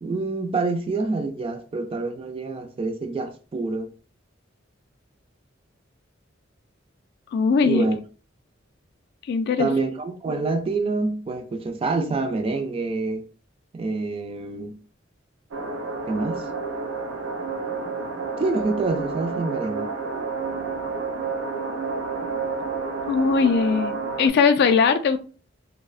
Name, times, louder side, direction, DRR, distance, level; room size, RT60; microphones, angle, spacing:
voice 1, 0.0-3.9 7.6-8.0 9.6-13.2 13.7-14.8 16.1-16.5 18.4-19.9, right 3 dB, 30° right, 0.3 m, -26 dB
voice 2, 7.3-7.9 9.3-9.7 23.1-25.2, left 5 dB, 55° left, 0.3 m, -20 dB
sound 1, 15.5-24.3, right 4 dB, 90° right, 0.5 m, -30 dB
2.6 x 2.1 x 2.4 m
head